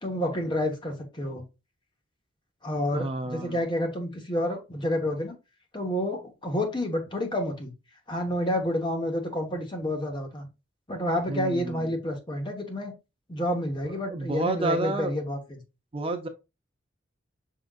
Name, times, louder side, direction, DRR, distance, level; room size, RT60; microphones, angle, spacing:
voice 1, 0.0-1.4 2.6-5.4 5.7-7.7 8.1-10.5 10.9-12.9 13.3-15.6, left 1 dB, 25° left, 3 dB, 1.0 m, -29 dB
voice 2, 2.9-3.6 11.3-11.9 13.8-15.1 15.9-16.3, right 2 dB, 25° right, 6 dB, 0.5 m, -30 dB
6.0 x 3.8 x 2.3 m, 0.27 s
head